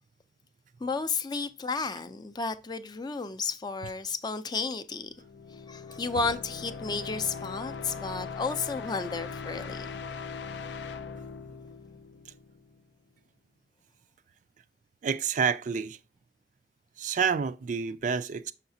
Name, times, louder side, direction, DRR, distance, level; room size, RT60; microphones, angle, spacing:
voice 1, 0.8-5.1 5.7-9.9, left 4 dB, 25° left, 0.4 m, -32 dB
sound 1, 5.1-12.8, left 5 dB, 80° left, 0.5 m, -40 dB
voice 2, 15.0-16.0 17.0-18.5, right 6 dB, 45° right, 0.3 m, -28 dB
6.4 x 5.8 x 2.6 m
head